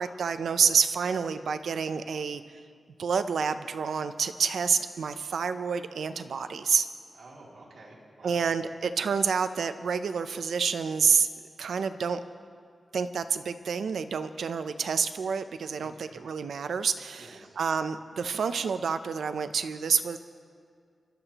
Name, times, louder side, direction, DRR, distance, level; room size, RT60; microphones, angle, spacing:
voice 1, 0.0-2.4 3.0-6.9 8.2-11.3 11.6-12.2 12.9-20.2, right 6 dB, 85° right, 11 dB, 0.5 m, -28 dB
voice 2, 7.1-8.5 15.8-16.2 17.1-17.6, right 2 dB, 65° right, -6 dB, 2.6 m, -50 dB
28.0 x 12.0 x 3.0 m, 2.2 s
wide cardioid pair, 175°, 0 cm